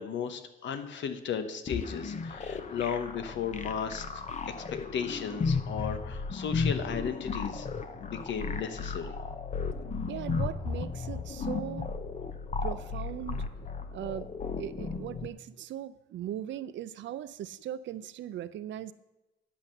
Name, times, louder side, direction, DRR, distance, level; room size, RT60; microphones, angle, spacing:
voice 1, 0.0-4.5 4.9-7.7 8.0-9.2, left 7 dB, 70° left, 9 dB, 1.0 m, -35 dB
sound 1, 1.7-15.3, left 4 dB, 35° left, 0.8 m, -35 dB
voice 2, 10.1-11.9 12.6-13.4 13.9-14.3 14.6-18.9, right 11 dB, 70° right, 15 dB, 0.5 m, -39 dB
10.0 x 5.7 x 6.5 m, 1.0 s
cardioid pair, 90°, 20 cm